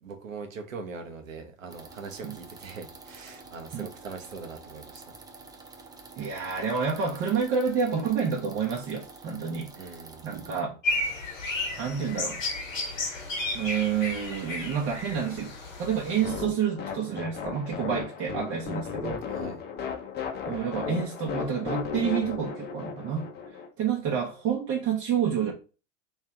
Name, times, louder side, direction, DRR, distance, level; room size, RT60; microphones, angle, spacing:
voice 1, 0.0-5.0 9.7-10.4 19.3-19.6, right 4 dB, 85° right, 1.0 m, -41 dB
sound 1, 1.7-10.6, right 3 dB, 10° right, 0.5 m, -48 dB
voice 2, 6.2-10.0 10.2-10.7 11.8-12.4 13.5-15.5 15.8-19.2 20.5-23.2 23.8-25.5, right 7 dB, 35° right, 0.9 m, -29 dB
sound 2, 10.8-16.4, left 2 dB, 90° left, 1.6 m, -33 dB
sound 3, 16.2-23.7, left 6 dB, 25° left, 0.8 m, -35 dB
3.3 x 3.0 x 3.4 m
hypercardioid pair, 95°, 38 cm